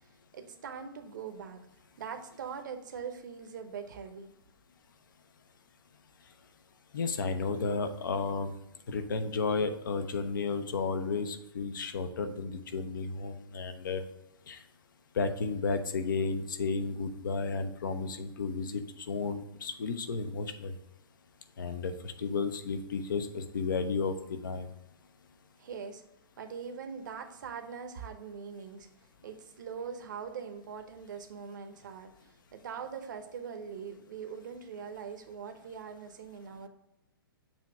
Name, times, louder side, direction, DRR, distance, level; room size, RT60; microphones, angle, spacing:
voice 1, 0.3-1.7 2.0-4.3 25.6-26.0 26.4-28.9 29.2-36.7, right 6 dB, 50° right, 7 dB, 0.9 m, -42 dB
voice 2, 6.9-8.5 8.9-14.0 14.5-14.6 15.1-20.7 21.6-24.7, left 4 dB, 55° left, 9 dB, 0.7 m, -33 dB
7.1 x 3.0 x 5.8 m, 0.86 s
figure-of-eight pair, 120°, 13 cm